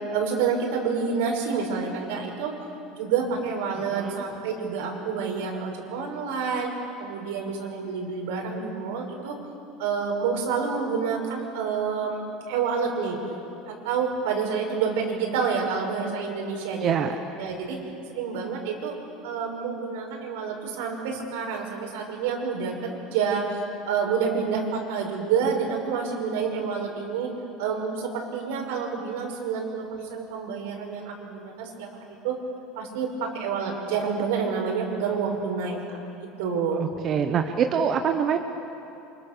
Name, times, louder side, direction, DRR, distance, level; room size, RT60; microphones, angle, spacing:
voice 1, 0.1-2.5 2.9-6.7 7.0-9.4 9.8-12.2 12.5-13.2 13.7-16.9 17.4-17.8 18.1-18.9 19.2-23.6 23.9-27.3 27.6-31.9 32.2-32.3 32.8-35.8 36.2-36.9, right 6 dB, 85° right, 1 dB, 6.1 m, -28 dB
voice 2, 3.9-4.2 16.8-17.1 36.7-38.4, right 7 dB, 30° right, 6 dB, 1.1 m, -25 dB
29.0 x 26.5 x 7.0 m, 2.8 s
cardioid pair, 160°, 0 cm